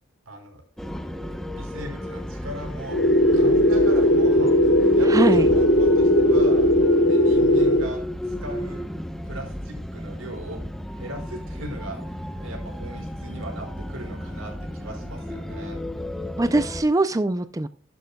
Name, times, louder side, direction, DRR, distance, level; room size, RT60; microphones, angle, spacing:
voice 1, 0.3-0.6 1.6-3.0 3.3-6.7 7.1-8.8 9.2-10.6 11.0-15.8, right 1 dB, 85° right, 2 dB, 5.3 m, -38 dB
sound 1, 0.8-16.8, left 1 dB, ahead, 0.8 m, -33 dB
sound 2, 2.9-7.9, left 1 dB, 50° left, 1.0 m, -18 dB
voice 2, 5.1-5.5 16.4-17.7, right 2 dB, 15° right, 12 dB, 0.4 m, -22 dB
14.0 x 11.5 x 2.3 m, 0.39 s
head